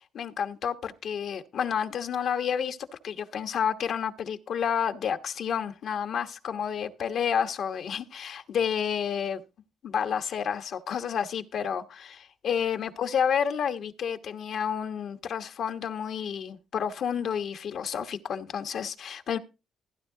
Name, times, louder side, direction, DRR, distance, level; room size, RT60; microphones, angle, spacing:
voice 1, 0.1-9.4 9.8-19.4, left 7 dB, 65° left, 1.2 m, -30 dB
15.5 x 9.9 x 3.8 m
cardioid pair, 90°, 0 cm